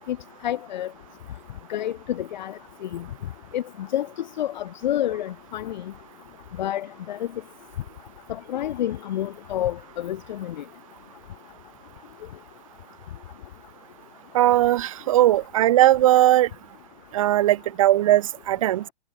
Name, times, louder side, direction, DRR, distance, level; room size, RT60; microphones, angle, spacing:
voice 1, 0.4-0.9 1.7-3.0 3.5-4.1 4.4-5.9 6.6-7.3 8.3-10.6 15.3-15.4, left 12 dB, 45° left, 7.1 m, -29 dB
voice 2, 14.3-16.5 17.1-18.8, right 14 dB, 30° right, 1.1 m, -19 dB
hypercardioid pair, 170°, 32 cm